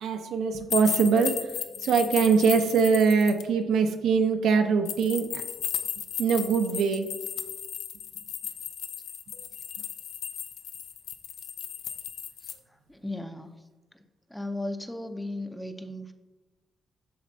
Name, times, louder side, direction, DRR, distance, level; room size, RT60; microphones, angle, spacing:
voice 1, 0.0-1.3 1.8-5.4 6.2-7.1, right 5 dB, 80° right, 6 dB, 0.7 m, -23 dB
sound 1, 0.7-3.4 4.8-12.5, left 9 dB, 80° left, 0.6 m, -35 dB
voice 2, 12.4-13.5 13.9-14.0 14.3-16.1, left 1 dB, 5° left, 7 dB, 0.5 m, -36 dB
12.5 x 4.3 x 2.7 m, 1.2 s
cardioid pair, 145°, 0 cm